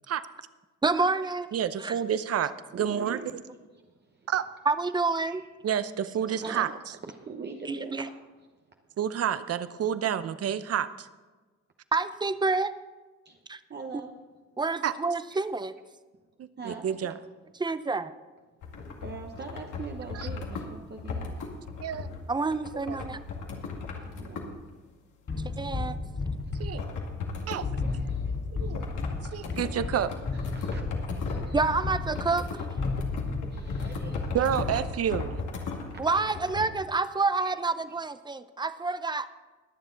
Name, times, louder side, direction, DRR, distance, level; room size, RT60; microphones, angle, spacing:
voice 1, 0.8-1.5 1.8-1.9 4.7-5.4 6.4-6.5 7.7-8.0 11.9-12.7 13.5-13.6 14.6-15.7 17.6-18.1 22.3-23.2 25.6-26.0 31.5-32.4 36.0-39.3, right 3 dB, 15° right, 13 dB, 0.6 m, -28 dB
voice 2, 1.5-3.2 4.3-4.4 5.6-6.7 9.0-11.1 14.8-14.9 16.4-17.1 21.8-22.1 22.9-23.0 26.6-26.8 27.5-27.7 28.5-28.8 29.3-30.1 34.3-35.4, right 9 dB, 50° right, 14 dB, 0.7 m, -29 dB
voice 3, 2.7-3.3 3.7-4.3 5.2-5.5 6.1-6.8 7.0-8.1 8.4-9.0 13.2-13.4 13.7-14.2 16.6-17.2 18.9-21.4 24.0-24.6 26.4-26.5 27.4-28.9 29.3-29.6 30.3-30.8 31.3-31.6 32.1-34.4 34.7-34.9 35.9-36.4 37.4-37.7, right 4 dB, 35° right, 2 dB, 1.0 m, -44 dB
sound 1, 18.6-24.7 26.8-27.6 28.7-36.7, left 4 dB, 80° left, 2.1 m, -36 dB
sound 2, 25.3-35.2, left 3 dB, 45° left, 3.2 m, -33 dB
21.5 x 7.2 x 3.9 m, 1.3 s
cardioid pair, 90°, 30 cm